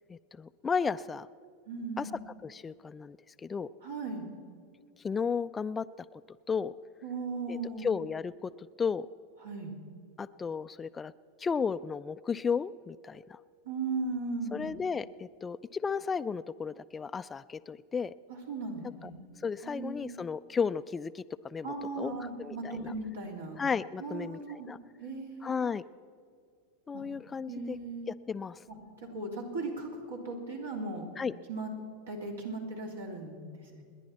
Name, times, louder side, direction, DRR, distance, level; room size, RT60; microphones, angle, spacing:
voice 1, 0.1-1.3 2.0-2.1 2.4-3.7 5.0-6.2 6.5-6.7 7.5-9.1 10.2-11.1 11.4-13.4 14.5-18.1 19.0-19.1 19.4-22.9 23.6-24.8 25.4-25.8 26.9-27.8 28.1-28.6 31.2-31.3, left 6 dB, 20° left, 15 dB, 0.4 m, -34 dB
voice 2, 1.7-2.2 3.8-4.3 7.0-7.9 9.4-9.7 13.6-14.7 18.3-19.1 19.6-20.1 21.6-23.6 24.0-24.7 25.0-25.5 26.9-27.0 27.5-28.1 28.7-31.0 31.5-31.7 32.1-33.8, right 3 dB, 75° right, 0 dB, 3.2 m, -37 dB
29.0 x 10.5 x 4.3 m, 2.2 s
figure-of-eight pair, 90°, 0 cm